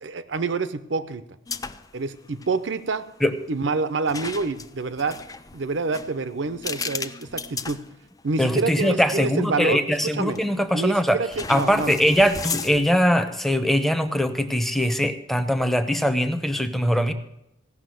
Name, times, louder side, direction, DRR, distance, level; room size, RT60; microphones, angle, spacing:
voice 1, 0.0-1.2 1.9-3.0 3.5-5.2 5.5-7.8 8.2-10.4 10.7-11.9, right 3 dB, 70° right, 14 dB, 0.7 m, -27 dB
sound 1, 1.5-2.0 2.3-2.5 4.1-8.5 9.0-9.1 10.3-10.7 11.3-13.0, left 5 dB, 20° left, 0.4 m, -35 dB
voice 2, 8.4-11.2 11.5-17.1, equal, ahead, 9 dB, 0.8 m, -22 dB
16.5 x 6.0 x 7.7 m, 0.86 s
head